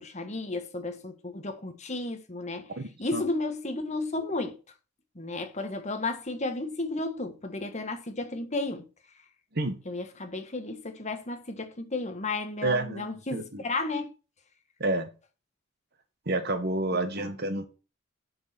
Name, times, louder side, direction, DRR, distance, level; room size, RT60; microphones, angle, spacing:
voice 1, 0.0-2.7 3.0-4.6 5.1-8.9 9.8-14.1, left 2 dB, 35° left, 1.5 m, -33 dB
voice 2, 2.8-3.2 9.5-9.8 12.6-13.6 14.8-15.1 16.2-17.7, right 2 dB, 50° right, 1.4 m, -29 dB
7.3 x 6.4 x 5.9 m
head